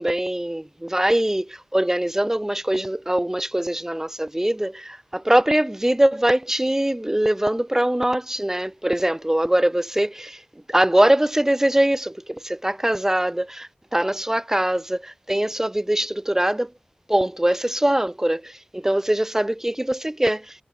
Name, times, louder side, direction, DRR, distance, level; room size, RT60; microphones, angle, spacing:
voice 1, 0.0-10.4 10.7-16.7 17.1-20.6, right 1 dB, 15° right, 7.8 m, -22 dB
wide cardioid pair, 70°, 3 cm